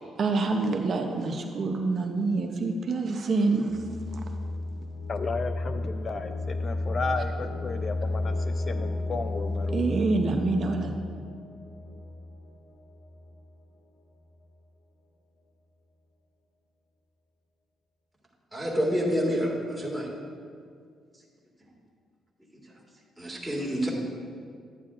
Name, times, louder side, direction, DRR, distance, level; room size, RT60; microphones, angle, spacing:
voice 1, 0.2-4.2 9.7-10.9, right 3 dB, 50° right, 4 dB, 0.6 m, -27 dB
sound 1, 3.7-13.5, left 2 dB, 90° left, 0.8 m, -33 dB
voice 2, 5.1-9.8, left 4 dB, 40° left, 9 dB, 0.3 m, -34 dB
voice 3, 18.5-20.1 23.2-23.9, equal, 5° right, -3 dB, 2.0 m, -28 dB
11.5 x 9.4 x 2.5 m, 2.2 s
cardioid pair, 90°, 0 cm